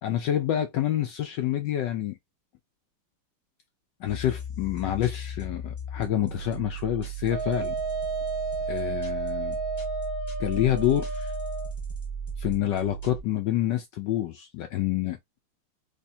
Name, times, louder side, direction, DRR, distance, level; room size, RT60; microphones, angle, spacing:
voice 1, 0.0-2.2 4.0-7.7 8.7-9.6 10.4-11.3 12.4-15.2, left 12 dB, 80° left, 1.0 m, -27 dB
sound 1, 4.1-13.2, right 4 dB, 35° left, 0.7 m, -36 dB
Wind instrument woodwind instrument, 7.3-11.7, right 2 dB, 80° right, 0.8 m, -32 dB
3.3 x 3.3 x 2.7 m
omnidirectional pair, 2.4 m